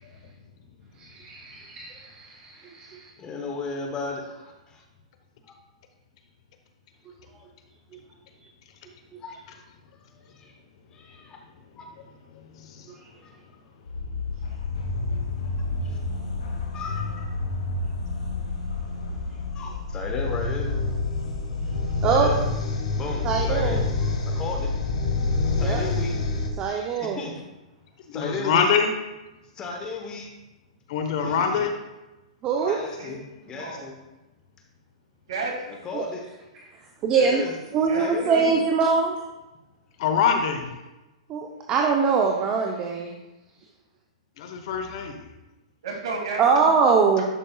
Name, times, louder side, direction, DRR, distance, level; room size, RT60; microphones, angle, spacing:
voice 1, 1.0-3.1 22.0-22.3 23.2-23.8 25.5-25.8 26.6-27.2 32.4-32.8 35.9-36.0 37.0-37.4 37.7-39.3 41.3-43.2 46.4-47.2, right 5 dB, 25° right, 1 dB, 0.7 m, -23 dB
voice 2, 3.2-4.8 5.5-5.6 9.2-9.6 10.1-10.5 10.9-11.4 11.8-11.9 13.2-13.3 15.8-16.0 16.7-17.3 19.5-20.8 22.0-22.4 22.9-24.7 25.6-26.1 27.0-27.3 28.1-28.7 29.5-30.3 31.2-31.6 32.7-33.2 33.4-33.9 35.8-36.3 37.1-38.5, left 3 dB, 20° left, 2 dB, 1.0 m, -35 dB
voice 3, 12.3-12.9 28.1-28.9 30.9-31.8 40.0-40.8 44.4-45.2, left 6 dB, 50° left, 6 dB, 0.9 m, -24 dB
sound 1, 13.9-26.5, left 3 dB, 85° left, 1.6 m, -28 dB
voice 4, 32.5-33.2 33.5-33.9 35.3-35.8 37.9-38.5 45.8-46.7, right 3 dB, 65° right, -1 dB, 2.3 m, -32 dB
11.0 x 5.2 x 2.3 m, 1.0 s
hypercardioid pair, 140°, 4 cm